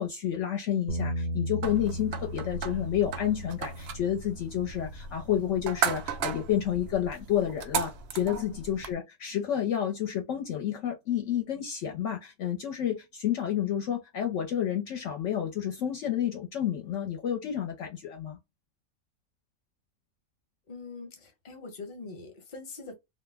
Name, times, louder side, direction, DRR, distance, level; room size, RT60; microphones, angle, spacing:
voice 1, 0.0-18.4, left 10 dB, 65° left, 0.9 m, -30 dB
Bass guitar, 0.9-7.1, equal, 80° right, 1.0 m, -38 dB
sound 1, 1.6-8.9, right 6 dB, 65° right, 0.6 m, -36 dB
voice 2, 20.7-22.9, left 3 dB, 40° left, 0.9 m, -43 dB
2.4 x 2.0 x 3.3 m
omnidirectional pair, 1.4 m